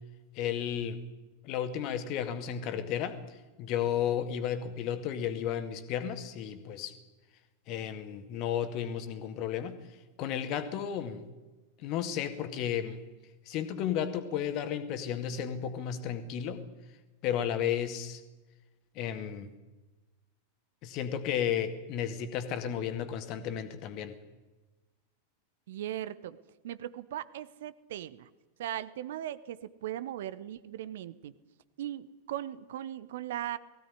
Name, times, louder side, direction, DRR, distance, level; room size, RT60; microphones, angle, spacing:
voice 1, 0.4-1.0 1.4-3.2 3.6-6.9 7.7-9.8 10.2-11.2 11.8-13.0 13.5-16.6 17.2-18.2 19.0-19.5 20.8-24.2, left 9 dB, 40° left, 9 dB, 2.1 m, -33 dB
voice 2, 25.7-26.4 26.6-28.3 28.6-31.3 31.8-33.6, right 12 dB, 55° right, 16 dB, 0.9 m, -38 dB
19.0 x 16.0 x 10.0 m, 1.2 s
figure-of-eight pair, 90°, 0 cm